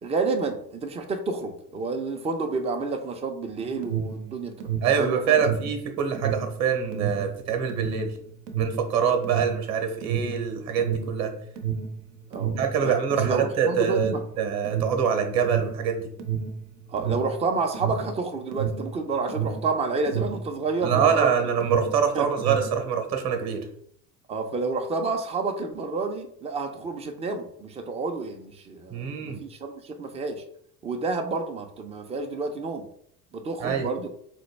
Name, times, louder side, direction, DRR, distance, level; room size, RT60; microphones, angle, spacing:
voice 1, 0.0-4.7 4.9-5.5 12.3-12.9 13.2-14.2 16.9-21.3 22.1-22.3 24.3-30.4 30.8-32.9 33.3-34.1, right 3 dB, 15° right, 5 dB, 0.3 m, -29 dB
Alarm, 3.5-21.3 21.5-22.8, right 7 dB, 80° right, 0.7 m, -30 dB
voice 2, 4.8-8.1 8.6-11.3 12.6-16.1 20.8-23.7 28.9-29.4 33.6-33.9, right 7 dB, 35° right, 5 dB, 0.8 m, -25 dB
4.1 x 2.2 x 3.2 m, 0.66 s
hypercardioid pair, 75°, 48 cm